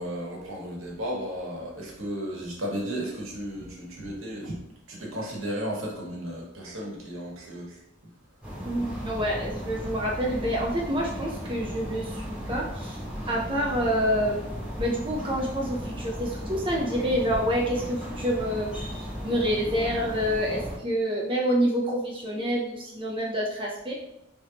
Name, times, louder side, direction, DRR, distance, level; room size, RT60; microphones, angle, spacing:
voice 1, 0.0-4.5 4.9-7.8, equal, 75° right, -3 dB, 1.5 m, -34 dB
sound 1, 8.4-20.8, equal, 5° right, 1.2 m, -36 dB
voice 2, 8.6-13.0 13.3-18.7 19.0-23.9, equal, 25° right, -2 dB, 0.5 m, -27 dB
4.2 x 3.3 x 2.8 m, 0.82 s
head